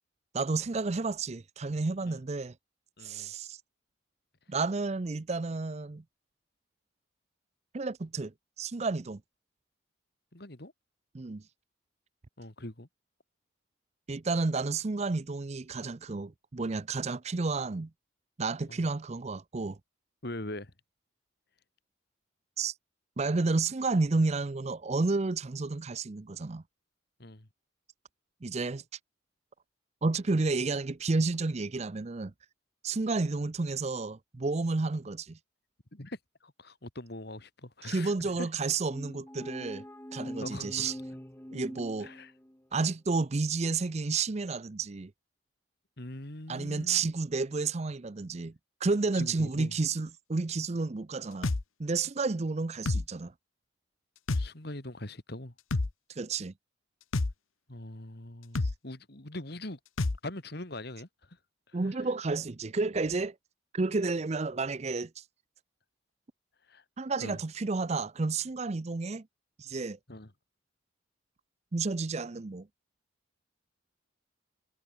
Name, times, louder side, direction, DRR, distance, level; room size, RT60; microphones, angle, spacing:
voice 1, 0.3-2.5 3.0-3.6 4.5-6.0 7.7-8.3 8.6-9.2 11.1-11.4 14.1-17.9 18.4-19.8 22.6-22.7 23.2-26.6 28.4-28.8 30.0-32.3 32.8-35.4 37.8-39.8 40.1-40.9 41.5-42.1 42.7-45.1 46.5-48.5 48.8-51.5 51.8-53.3 56.1-56.5 61.7-63.3 63.7-65.2 67.0-69.3 69.6-70.0 71.7-72.7, right 3 dB, 35° right, 0.5 m, -31 dB
voice 2, 3.0-3.3 10.3-10.7 12.4-12.9 18.7-18.9 20.2-20.7 27.2-27.5 35.9-38.5 40.4-40.9 42.0-42.3 46.0-47.1 49.1-49.7 54.3-55.5 57.7-59.8 60.2-61.4 61.7-62.1 66.7-66.8 67.2-67.4 70.1-70.3, left 1 dB, 55° left, 2.5 m, -42 dB
sound 1, 38.9-42.6, equal, 10° left, 1.4 m, -43 dB
sound 2, 51.4-51.6 52.9-53.1 54.3-54.5 55.7-55.9 57.1-57.3 58.5-58.7 60.0-60.2, left 2 dB, 90° left, 0.9 m, -28 dB
head